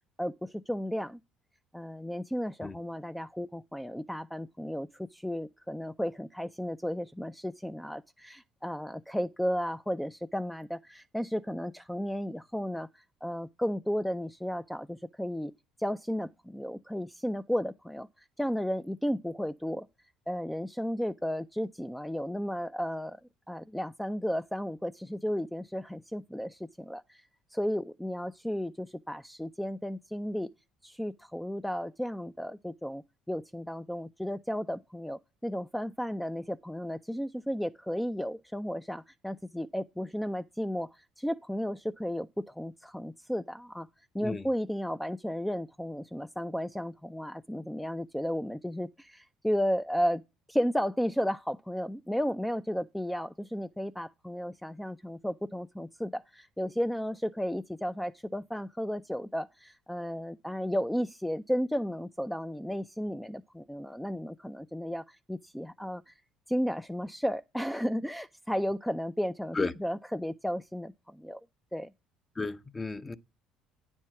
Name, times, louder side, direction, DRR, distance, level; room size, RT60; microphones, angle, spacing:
voice 1, 0.2-1.2 1.7-15.5 15.8-19.9 20.3-23.2 23.5-30.5 30.8-43.9 44.1-50.2 50.5-66.2 66.5-71.4 71.7-71.9, equal, 5° left, 0.4 m, -34 dB
voice 2, 72.4-73.2, left 3 dB, 25° left, 0.7 m, -32 dB
9.7 x 4.5 x 5.8 m
hypercardioid pair, 70°, 0 cm